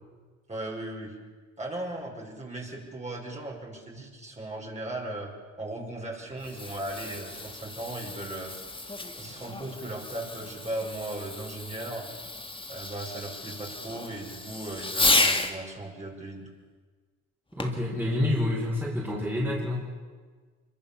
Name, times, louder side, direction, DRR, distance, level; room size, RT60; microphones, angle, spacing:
voice 1, 0.5-1.1 1.6-8.5 9.2-12.1 12.7-16.5, right 1 dB, 25° right, -1 dB, 5.8 m, -37 dB
Fireworks, 6.2-15.6 17.6-17.9 18.6-18.7, left 2 dB, 15° left, 2.1 m, -32 dB
voice 2, 17.6-19.9, left 1 dB, 5° right, -3 dB, 5.1 m, -28 dB
24.5 x 23.0 x 7.2 m, 1.5 s
cardioid pair, 90°, 30 cm